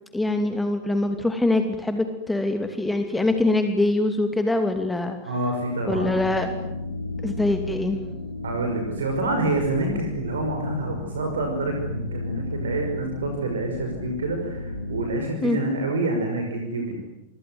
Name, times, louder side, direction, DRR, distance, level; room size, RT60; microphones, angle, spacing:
voice 1, 0.1-5.2 5.9-6.5 7.2-8.0 15.4-15.6, left 2 dB, 5° left, 6 dB, 2.7 m, -23 dB
voice 2, 5.2-6.2 8.4-17.0, right 2 dB, 65° right, 4 dB, 5.8 m, -27 dB
sound 1, 5.9-15.1, left 2 dB, 80° left, 4.3 m, -33 dB
30.0 x 24.5 x 8.0 m, 0.90 s
figure-of-eight pair, 90°, 0 cm